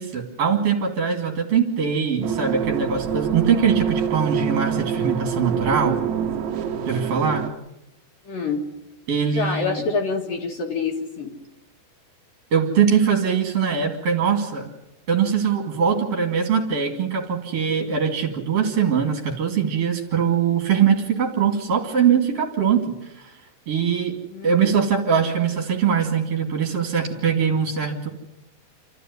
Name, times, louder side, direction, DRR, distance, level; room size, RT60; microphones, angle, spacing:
voice 1, 0.0-6.0 6.9-7.5 9.1-9.8 12.5-14.7 15.1-23.3 23.7-24.2 24.4-28.1, right 7 dB, 40° right, 3 dB, 2.8 m, -22 dB
sound 1, 2.2-7.5, right 8 dB, 75° right, 1.7 m, -25 dB
voice 2, 8.2-8.6 9.3-11.4 24.3-24.7, left 4 dB, 55° left, 0 dB, 3.3 m, -27 dB
28.0 x 14.0 x 9.5 m, 0.88 s
omnidirectional pair, 5.1 m